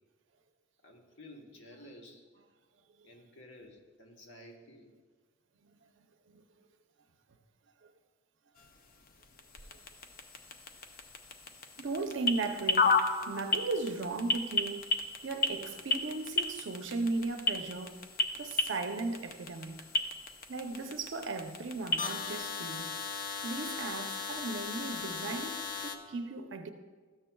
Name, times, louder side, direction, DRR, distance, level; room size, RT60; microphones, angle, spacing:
voice 1, 0.8-2.2 3.0-4.9 12.1-12.3, left 1 dB, 75° left, 1.2 m, -52 dB
voice 2, 5.6-6.4 11.8-15.0 15.2-18.0 18.3-19.8 20.5-22.9 23.4-26.7, right 3 dB, 70° right, 0.6 m, -37 dB
sound 1, 8.6-26.0, left 3 dB, 50° left, 0.6 m, -35 dB
13.0 x 7.4 x 2.3 m
head